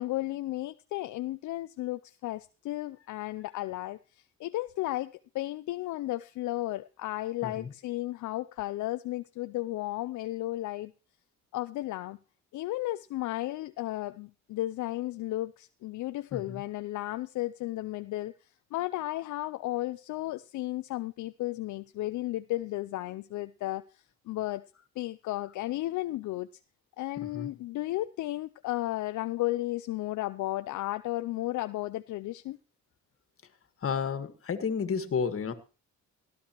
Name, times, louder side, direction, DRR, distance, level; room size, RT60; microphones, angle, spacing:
voice 1, 0.0-10.9 11.5-12.2 12.5-24.7 25.0-26.5 27.0-32.6, left 16 dB, 75° left, 0.5 m, -34 dB
voice 2, 27.2-27.5 33.8-35.5, left 6 dB, 45° left, 1.8 m, -32 dB
18.0 x 12.0 x 3.0 m
cardioid pair, 90°, 30 cm